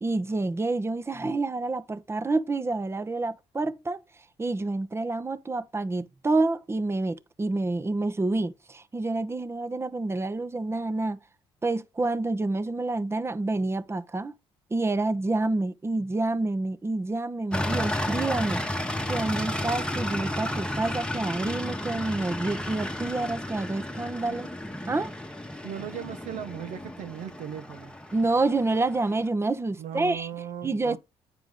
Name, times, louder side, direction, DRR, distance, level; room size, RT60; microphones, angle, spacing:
voice 1, 0.0-4.0 4.4-11.2 11.6-14.3 14.7-24.5 24.9-25.1 28.1-30.3 30.6-31.0, right 2 dB, 20° right, 0.9 m, -28 dB
sound 1, 17.5-29.3, left 1 dB, 5° left, 1.2 m, -33 dB
voice 2, 25.6-28.0 29.8-31.0, right 9 dB, 70° right, 0.9 m, -37 dB
9.2 x 4.6 x 3.7 m
supercardioid pair, 65°, 13 cm